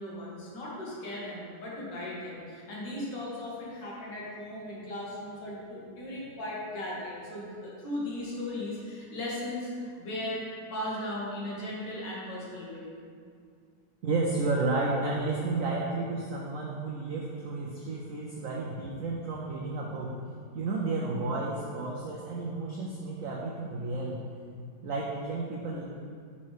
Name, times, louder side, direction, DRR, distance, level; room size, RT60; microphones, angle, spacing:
voice 1, 0.0-10.4 10.7-12.9, left 1 dB, 65° left, -5 dB, 2.0 m, -37 dB
voice 2, 14.0-20.1 20.5-24.2 24.8-25.8, right 3 dB, 75° right, -3 dB, 0.7 m, -32 dB
5.5 x 4.2 x 4.8 m, 2.2 s
omnidirectional pair, 2.1 m